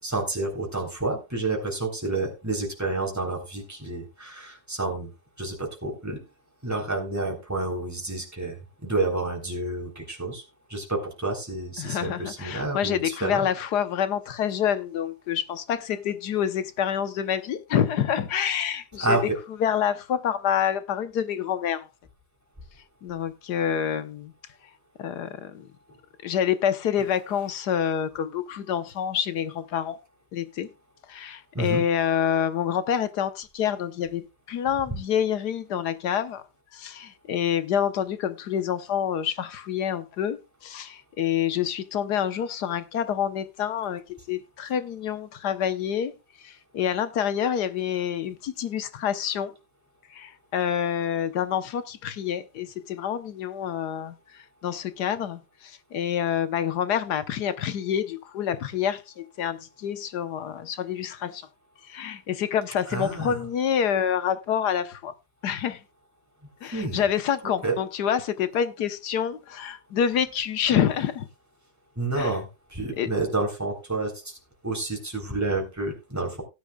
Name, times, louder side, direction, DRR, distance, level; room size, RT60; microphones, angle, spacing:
voice 1, 0.0-5.1 5.4-6.2 6.6-10.4 10.7-13.5 19.0-19.4 31.5-31.8 62.9-63.4 66.7-67.0 67.6-67.8 72.0-74.4 74.6-76.4, right 2 dB, 10° right, 3.6 m, -29 dB
voice 2, 11.8-19.2 19.6-21.9 23.0-24.3 25.0-25.7 26.2-30.0 30.3-30.7 31.1-36.4 36.7-46.1 46.4-49.5 50.1-61.5 61.8-65.1 65.4-65.8 66.6-71.3 72.2-72.4 73.0-73.1, left 9 dB, 80° left, 1.5 m, -27 dB
17.0 x 10.0 x 2.3 m
omnidirectional pair, 1.7 m